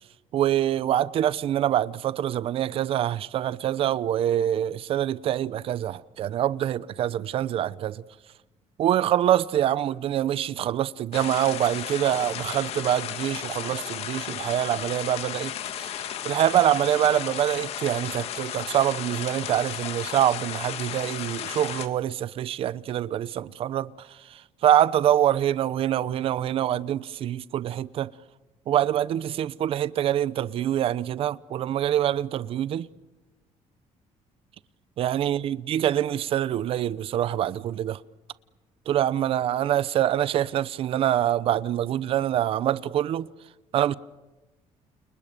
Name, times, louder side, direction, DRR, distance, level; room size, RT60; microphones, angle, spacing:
voice 1, 0.3-8.0 8.8-15.9 16.2-23.9 24.3-28.1 28.7-32.9 35.0-38.0 38.9-43.3 43.7-43.9, right 11 dB, 50° right, 0.9 m, -25 dB
sound 1, 11.1-21.9, left 10 dB, 55° left, 2.0 m, -34 dB
29.5 x 29.0 x 6.9 m
cardioid pair, 175°, 12 cm